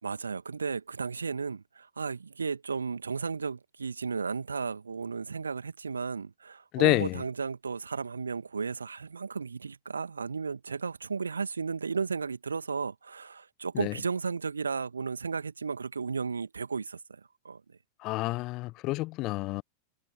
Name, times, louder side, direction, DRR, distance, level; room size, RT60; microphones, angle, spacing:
voice 1, 0.0-17.8, right 5 dB, 75° right, 2.0 m, -34 dB
voice 2, 6.7-7.2 13.7-13.9 18.0-19.6, left 20 dB, 40° left, 1.2 m, -28 dB
figure-of-eight pair, 90°, 0 cm